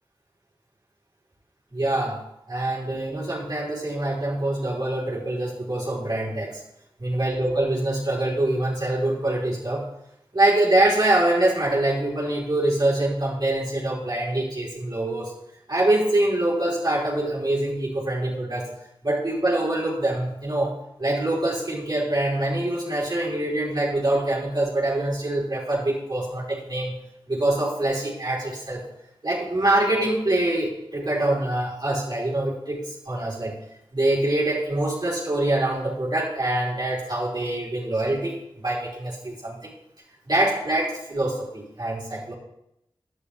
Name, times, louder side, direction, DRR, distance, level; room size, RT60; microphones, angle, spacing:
voice 1, 1.7-2.2 2.5-6.6 7.0-9.9 10.3-15.3 15.7-18.7 19.0-26.9 27.3-28.8 29.2-33.6 33.9-39.7 40.3-42.3, right 1 dB, 45° right, -6 dB, 4.0 m, -24 dB
11.5 x 10.0 x 3.4 m, 0.82 s
wide cardioid pair, 50°, 10 cm